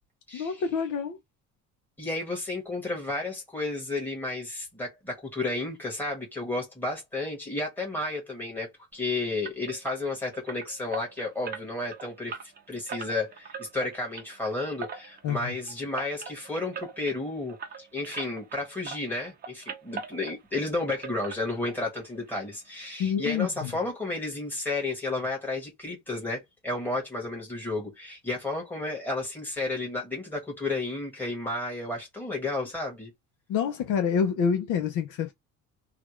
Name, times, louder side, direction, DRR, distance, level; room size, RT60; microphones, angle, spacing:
voice 1, 0.3-1.2 15.2-15.6 23.0-23.7 33.5-35.3, left 7 dB, 60° left, 0.7 m, -27 dB
voice 2, 2.0-12.4 12.7-33.1, left 2 dB, 5° left, 1.7 m, -32 dB
sound 1, 9.4-18.6 18.8-20.6 20.9-22.0 22.3-22.4 22.8-22.9 23.3-23.4, right 6 dB, 30° right, 0.7 m, -41 dB
3.3 x 2.4 x 3.1 m
cardioid pair, 165°, 34 cm